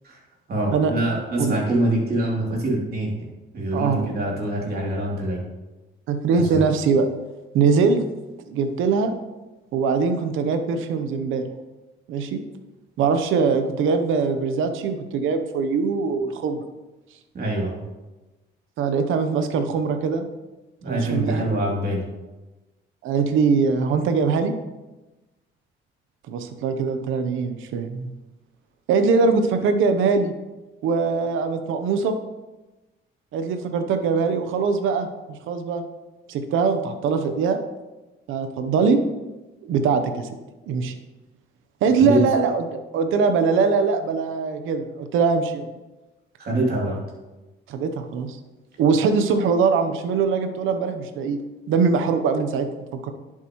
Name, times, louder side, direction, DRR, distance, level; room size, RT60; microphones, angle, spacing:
voice 1, 0.5-3.3 3.5-5.4 6.5-6.6 17.3-17.8 20.8-22.0 42.0-42.2 46.4-47.0, right 1 dB, 50° right, -2 dB, 3.0 m, -24 dB
voice 2, 3.7-4.1 6.1-7.1 7.5-8.0 8.5-9.1 9.7-11.4 12.1-12.4 13.0-16.7 18.8-20.3 20.8-21.4 23.0-24.5 26.3-28.1 28.9-30.3 30.8-32.1 33.3-35.1 35.5-35.8 36.3-37.6 38.3-39.0 39.6-40.3 40.7-40.9 41.8-45.7 47.7-48.4 48.8-51.4 51.7-53.1, right 5 dB, 85° right, 8 dB, 0.8 m, -22 dB
10.5 x 7.4 x 3.1 m, 1.1 s
cardioid pair, 90°, 20 cm